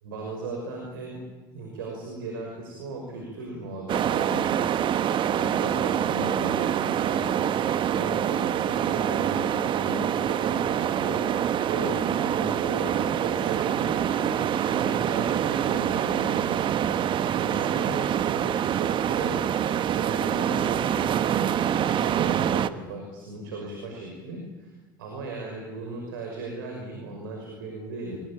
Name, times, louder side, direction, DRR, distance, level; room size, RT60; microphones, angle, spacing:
voice 1, 0.0-1.2 1.5-4.5 5.2-11.4 11.6-19.3 19.9-24.7 25.0-28.2, right 2 dB, 80° right, 1 dB, 6.0 m, -37 dB
sound 1, 3.9-22.7, right 9 dB, 45° right, 1.3 m, -25 dB
24.0 x 23.0 x 8.9 m, 1.2 s
hypercardioid pair, 70°, 11 cm